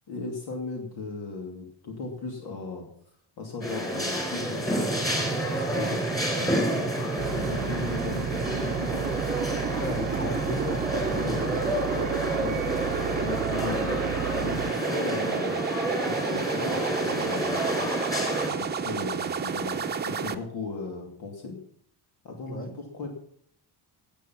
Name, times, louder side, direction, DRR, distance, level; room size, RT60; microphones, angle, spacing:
voice 1, 0.1-2.9 3.4-6.9 7.2-9.0 11.1-11.4 11.9-12.6 13.1-15.7 16.0-17.9 18.4-21.6 22.2-23.1, left 3 dB, 65° left, 1 dB, 2.7 m, -37 dB
sound 1, 3.6-18.5, equal, 10° left, 4.0 m, -30 dB
sound 2, 3.8-20.3, right 6 dB, 25° right, 0.9 m, -32 dB
Engine starting, 7.2-14.7, right 14 dB, 75° right, 0.7 m, -35 dB
voice 2, 9.8-11.7 22.5-22.7, left 1 dB, 30° left, 5 dB, 2.2 m, -34 dB
17.5 x 8.7 x 5.9 m, 0.64 s
cardioid pair, 170°, 41 cm